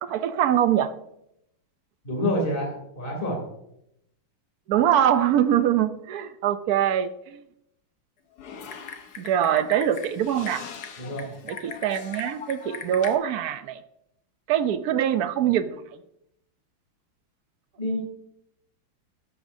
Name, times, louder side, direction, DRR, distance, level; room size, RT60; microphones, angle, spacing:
voice 1, 0.0-0.9 4.7-7.4 9.2-10.7 11.5-13.8 14.5-15.8, right 10 dB, 75° right, 11 dB, 0.8 m, -23 dB
voice 2, 2.0-3.4 11.0-11.3 17.8-18.0, left 1 dB, 25° left, 0 dB, 3.0 m, -27 dB
Typing, 8.4-13.1, left 6 dB, 55° left, 1.3 m, -39 dB
13.0 x 11.0 x 2.7 m, 0.78 s
omnidirectional pair, 2.3 m